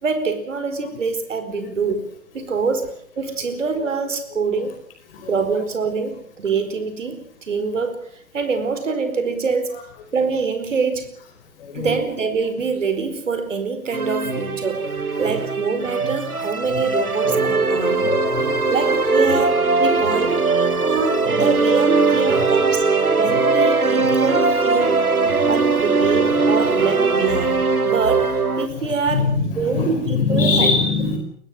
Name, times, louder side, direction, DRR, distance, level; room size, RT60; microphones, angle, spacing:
voice 1, 0.0-2.0 2.3-2.9 3.2-4.7 5.3-8.0 8.3-9.7 10.1-11.2 11.7-14.9 15.2-18.1 18.7-25.0 25.5-29.3 29.5-30.7, right 4 dB, 60° right, 8 dB, 4.7 m, -25 dB
sound 1, 13.9-28.7, right 4 dB, 80° right, 1.9 m, -20 dB
voice 2, 17.7-18.7 22.4-22.5 29.1-31.2, left 4 dB, 40° left, 6 dB, 4.9 m, -22 dB
23.0 x 19.0 x 7.6 m, 0.64 s
figure-of-eight pair, 125°, 43 cm